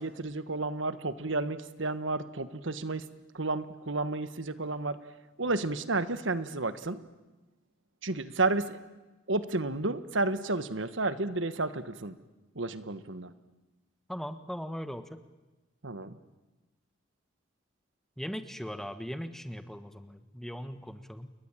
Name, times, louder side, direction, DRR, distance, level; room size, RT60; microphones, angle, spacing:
voice 1, 0.0-3.0 3.3-5.0 5.4-7.0 8.0-8.8 9.3-12.1 12.5-13.3 15.8-16.2, right 2 dB, 70° right, 13 dB, 1.5 m, -31 dB
voice 2, 14.1-15.2 18.2-21.3, equal, ahead, 10 dB, 1.3 m, -39 dB
29.5 x 22.5 x 9.1 m, 1.1 s
head